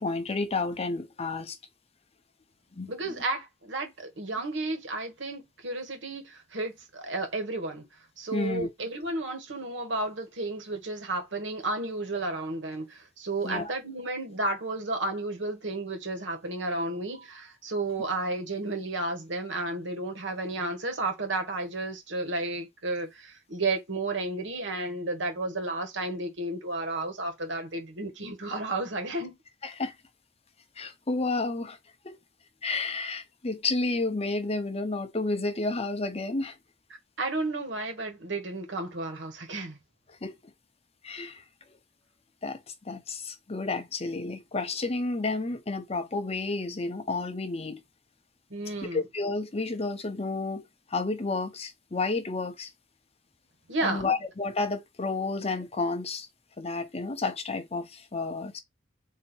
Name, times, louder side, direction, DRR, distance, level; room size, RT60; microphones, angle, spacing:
voice 1, 0.0-1.6 2.8-2.9 8.3-8.7 13.4-13.7 29.6-29.9 30.8-31.8 32.0-32.2 32.6-36.5 40.2-40.3 41.0-41.4 42.4-47.8 48.9-50.6 50.9-52.7 53.8-56.3 56.6-58.6, left 3 dB, 35° left, 0.7 m, -31 dB
voice 2, 2.9-7.8 8.2-29.3 37.2-39.8 48.5-49.0 53.7-54.1, right 2 dB, 75° right, 1.5 m, -32 dB
4.1 x 2.9 x 4.4 m
head